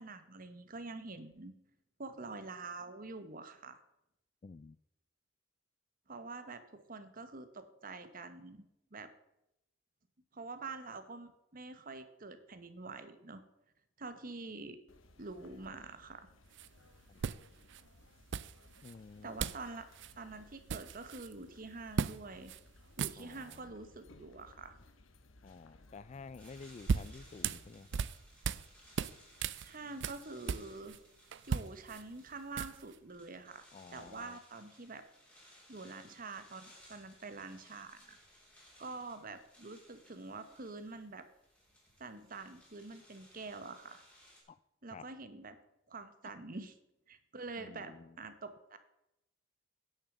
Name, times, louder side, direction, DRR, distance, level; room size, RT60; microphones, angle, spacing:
voice 1, 0.0-1.5 2.0-3.8 6.1-9.1 10.3-13.4 14.0-14.8 15.2-16.3 19.2-19.9 20.2-22.5 23.0-24.7 29.6-31.0 31.5-33.6 33.9-35.0 35.7-38.2 38.8-41.3 42.0-44.0 44.8-45.6 45.9-46.7 47.1-48.8, right 3 dB, 45° right, 10 dB, 1.1 m, -46 dB
voice 2, 4.4-4.8 17.1-17.2 18.8-19.5 23.2-23.7 25.4-28.0 33.7-34.4 44.5-44.6 44.9-45.1 46.2-46.3 47.6-48.2, left 4 dB, 35° left, 18 dB, 0.3 m, -51 dB
sound 1, 14.9-27.7, left 2 dB, 85° left, 1.2 m, -61 dB
sound 2, 16.5-16.7 17.2-17.8 18.3-18.9 19.4-19.7 19.9-20.1 20.5-21.3 22.0-22.2 22.5-22.6 22.9-23.6 26.5-28.7 29.0-31.0 31.3-33.0, right 6 dB, 60° right, 0.4 m, -37 dB
sound 3, 26.4-44.4, equal, 5° left, 3.1 m, -62 dB
10.0 x 6.5 x 7.2 m, 0.85 s
head